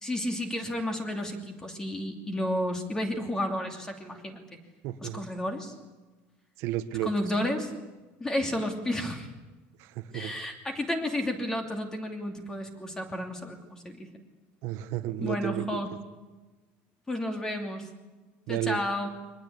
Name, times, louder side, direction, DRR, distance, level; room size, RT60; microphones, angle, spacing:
voice 1, 0.0-4.4 5.0-5.7 7.0-7.7 8.2-9.3 10.1-14.1 15.2-15.9 17.1-17.9 18.5-19.1, left 1 dB, 10° left, 4 dB, 2.8 m, -32 dB
voice 2, 4.8-5.2 6.6-7.1 9.8-10.3 14.6-15.8 18.5-18.8, right 13 dB, 55° right, 10 dB, 1.5 m, -32 dB
23.5 x 20.0 x 8.6 m, 1.2 s
cardioid pair, 170°, 5 cm